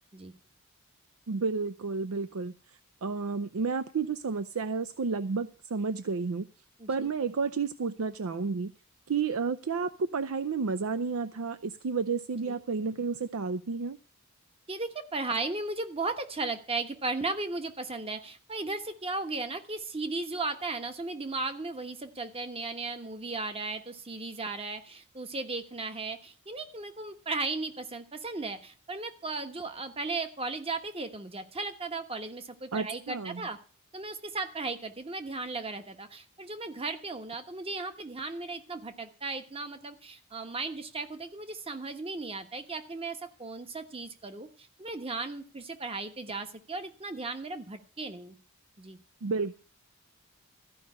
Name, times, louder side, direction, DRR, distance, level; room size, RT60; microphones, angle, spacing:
voice 1, 1.3-2.5 3.0-6.5 6.9-8.7 9.1-14.0 32.7-33.5 49.2-49.5, right 4 dB, 75° right, 13 dB, 0.5 m, -31 dB
voice 2, 14.7-33.6 33.9-48.3 48.8-49.0, right 3 dB, 25° right, 8 dB, 1.2 m, -36 dB
14.0 x 5.4 x 9.5 m, 0.40 s
head